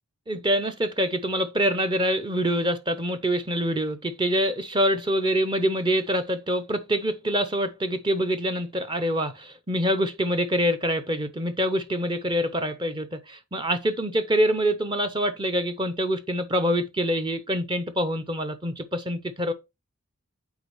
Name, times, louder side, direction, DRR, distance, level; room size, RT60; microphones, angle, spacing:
voice 1, 0.3-19.5, equal, 20° right, 0.6 m, -25 dB
8.2 x 4.5 x 3.1 m
head